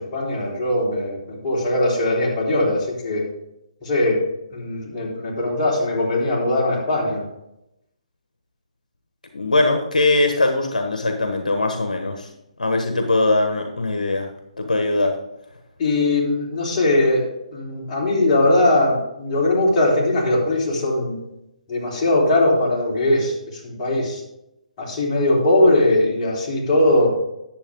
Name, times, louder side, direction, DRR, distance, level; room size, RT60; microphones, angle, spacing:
voice 1, 0.0-3.2 3.8-4.2 4.5-7.3 15.8-17.3 17.5-21.2 21.7-24.2 24.8-27.1, left 1 dB, 35° left, -5 dB, 3.6 m, -20 dB
voice 2, 9.3-12.3 12.6-14.3 14.6-15.1, left 2 dB, 85° left, 5 dB, 1.2 m, -21 dB
10.0 x 7.2 x 3.7 m, 0.85 s
figure-of-eight pair, 140°, 4 cm